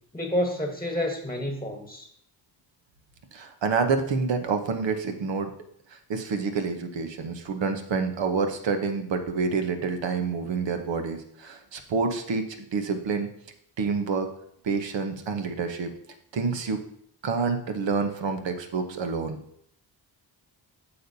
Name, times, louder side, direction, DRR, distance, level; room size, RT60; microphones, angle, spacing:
voice 1, 0.1-2.1, left 1 dB, 10° left, 3 dB, 1.2 m, -29 dB
voice 2, 3.3-5.5 6.1-13.3 13.8-14.3 14.6-15.9 16.3-16.8 17.2-19.4, right 5 dB, 70° right, 6 dB, 1.1 m, -28 dB
8.5 x 7.0 x 2.8 m, 0.69 s
cardioid pair, 75°, 46 cm